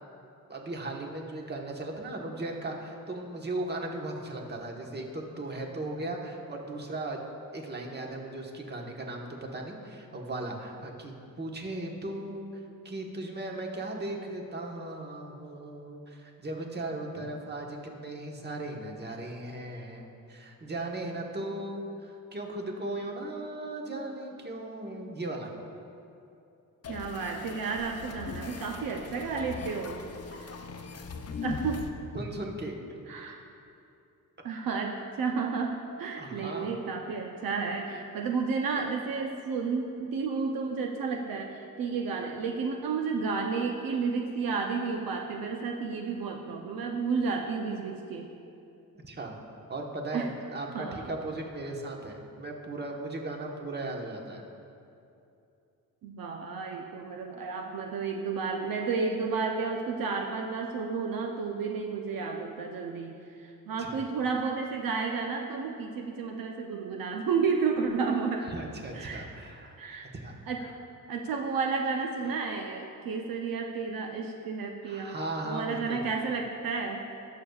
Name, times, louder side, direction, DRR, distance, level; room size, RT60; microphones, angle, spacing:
voice 1, 0.5-7.2 7.5-12.4 12.8-25.5 32.1-32.8 36.2-36.7 49.0-49.3 49.7-54.4 63.8-64.0 68.4-69.8 70.1-70.7 74.8-76.0, right 2 dB, 30° right, 1 dB, 1.2 m, -37 dB
sound 1, 26.8-31.9, left 5 dB, 45° left, 0.7 m, -40 dB
voice 2, 26.9-30.0 30.3-30.6 31.4-31.9 33.1-33.4 34.4-48.3 50.1-50.3 50.7-51.1 56.0-68.5 68.9-69.2 69.8-70.1 70.5-70.7 71.1-75.2 75.4-77.0, right 5 dB, 75° right, 3 dB, 0.7 m, -32 dB
18.5 x 6.7 x 2.4 m, 2.7 s
cardioid pair, 105°, 35 cm